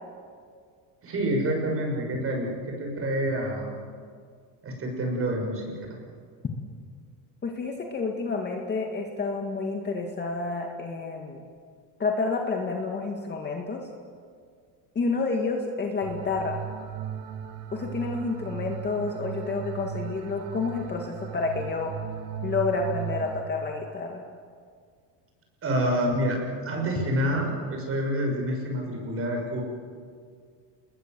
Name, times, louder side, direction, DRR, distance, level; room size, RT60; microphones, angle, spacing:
voice 1, 1.0-3.7 4.6-5.7 25.6-29.6, right 1 dB, 30° right, 1 dB, 6.4 m, -27 dB
voice 2, 7.4-11.4 12.0-13.8 15.0-16.6 17.7-21.9 22.4-24.2, left 4 dB, 20° left, 2 dB, 2.0 m, -29 dB
sound 1, 16.0-23.4, right 8 dB, 85° right, 2.1 m, -37 dB
29.5 x 21.0 x 7.7 m, 2.1 s
cardioid pair, 155°, 46 cm